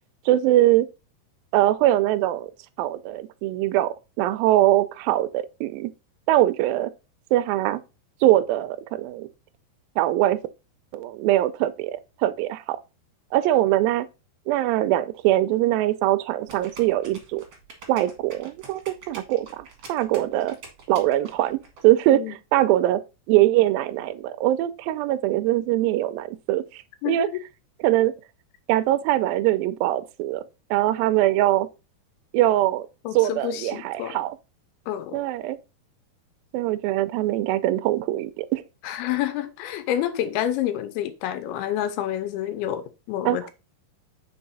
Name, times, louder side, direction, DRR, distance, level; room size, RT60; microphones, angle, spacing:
voice 1, 0.3-0.9 1.5-2.5 2.8-5.9 6.3-6.9 7.3-7.8 8.2-9.3 10.0-10.4 10.9-12.8 13.3-14.1 14.5-17.4 17.9-20.6 20.9-23.0 23.3-27.3 27.8-28.1 28.7-30.4 30.7-31.7 32.3-32.9 33.1-34.4 35.1-35.6 36.5-38.6 43.3-43.4, right 15 dB, 85° right, 2.1 m, -22 dB
sound 1, 16.5-21.8, right 4 dB, 55° right, 1.4 m, -44 dB
voice 2, 27.0-27.4 33.1-34.2 34.9-35.2 38.8-43.5, left 11 dB, 85° left, 2.6 m, -28 dB
5.5 x 4.2 x 4.0 m
omnidirectional pair, 4.6 m